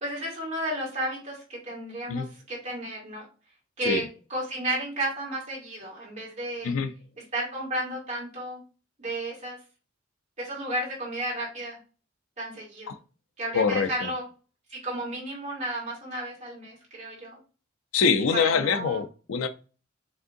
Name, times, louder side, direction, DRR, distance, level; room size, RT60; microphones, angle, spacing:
voice 1, 0.0-3.2 3.8-6.7 7.3-8.6 9.0-9.6 10.4-11.8 12.4-12.9 13.4-14.3 14.7-17.4 18.3-19.0, right 1 dB, 35° right, 2.4 m, -33 dB
voice 2, 13.5-14.1 17.9-19.5, left 5 dB, 90° left, 0.5 m, -24 dB
5.0 x 3.7 x 2.6 m
head